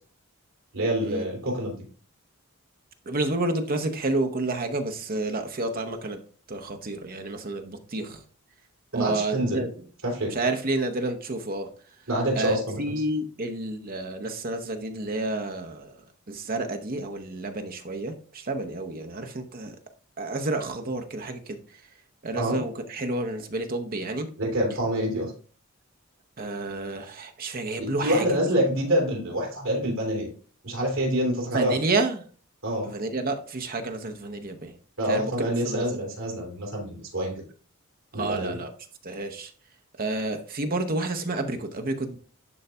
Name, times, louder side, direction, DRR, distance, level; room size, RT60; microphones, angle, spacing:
voice 1, 0.7-1.8 8.9-9.7 10.0-10.3 12.1-13.0 22.3-22.6 24.4-25.3 27.8-30.3 30.6-31.8 32.6-32.9 35.0-37.4 38.1-38.6, right 1 dB, 65° right, -1 dB, 2.8 m, -26 dB
voice 2, 3.1-6.2 6.5-8.2 8.9-9.7 10.3-11.7 12.4-15.9 16.3-19.7 20.2-21.6 22.2-24.3 26.4-28.3 31.5-32.2 32.9-34.7 35.1-36.0 38.2-38.7 39.0-39.5 40.0-42.2, right 2 dB, 40° right, 6 dB, 0.7 m, -30 dB
11.0 x 3.9 x 2.2 m, 0.41 s
head